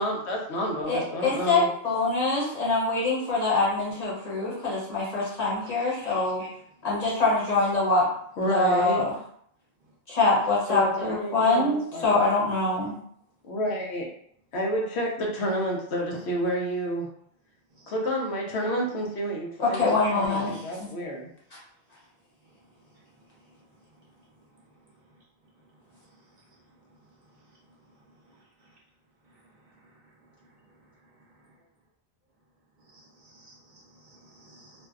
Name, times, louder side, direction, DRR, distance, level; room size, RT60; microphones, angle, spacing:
voice 1, 0.0-1.7 8.4-9.0 10.7-12.2 13.4-14.1 14.5-17.1 17.9-21.3, equal, 90° left, 0 dB, 0.9 m, -29 dB
voice 2, 0.9-6.4 6.8-8.1 8.5-9.1 10.1-12.9 19.6-20.9, left 3 dB, 40° left, -6 dB, 0.9 m, -24 dB
voice 3, 5.6-6.5 17.8-17.9 32.9-34.9, right 1 dB, 55° right, -4 dB, 0.6 m, -51 dB
2.5 x 2.2 x 2.3 m, 0.67 s
omnidirectional pair, 1.1 m